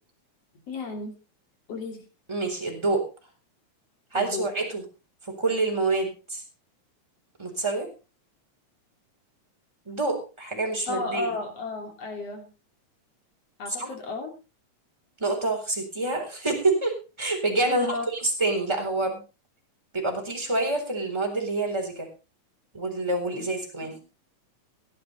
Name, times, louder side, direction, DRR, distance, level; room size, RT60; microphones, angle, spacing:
voice 1, 0.7-1.2 1.7-2.1 4.1-4.5 10.9-12.5 13.6-14.3 17.7-18.1 23.4-23.5 23.8-24.0, left 3 dB, 55° left, 4 dB, 3.7 m, -34 dB
voice 2, 2.3-3.0 4.1-4.8 5.2-6.4 7.4-7.9 9.9-11.3 13.8-13.9 15.2-19.2 19.9-22.1 22.7-23.9, right 2 dB, 10° right, 1 dB, 3.8 m, -27 dB
16.5 x 10.5 x 4.0 m, 0.31 s
omnidirectional pair, 3.4 m